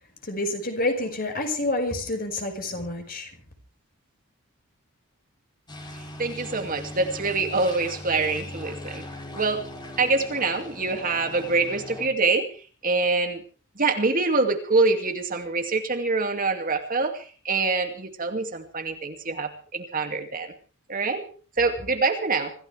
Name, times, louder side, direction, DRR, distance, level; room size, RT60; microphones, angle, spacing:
voice 1, 0.2-3.3, left 2 dB, 45° left, 4 dB, 5.6 m, -28 dB
sound 1, 5.7-12.1, left 1 dB, 20° left, 3.8 m, -39 dB
voice 2, 6.2-9.1 9.3-9.6 10.0-12.6 12.8-13.4 13.8-20.5 20.9-21.2 21.6-22.5, right 3 dB, 40° right, 5 dB, 2.4 m, -25 dB
26.0 x 16.0 x 3.4 m, 0.39 s
head